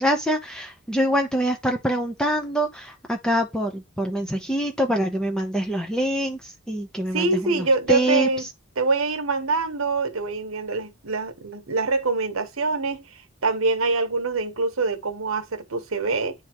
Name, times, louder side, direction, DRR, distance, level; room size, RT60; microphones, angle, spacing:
voice 1, 0.0-6.4 6.7-7.5 7.9-8.3, equal, 5° left, 0.7 m, -24 dB
voice 2, 7.1-8.5 8.8-16.3, right 3 dB, 80° right, 1.0 m, -25 dB
9.5 x 3.6 x 3.0 m
head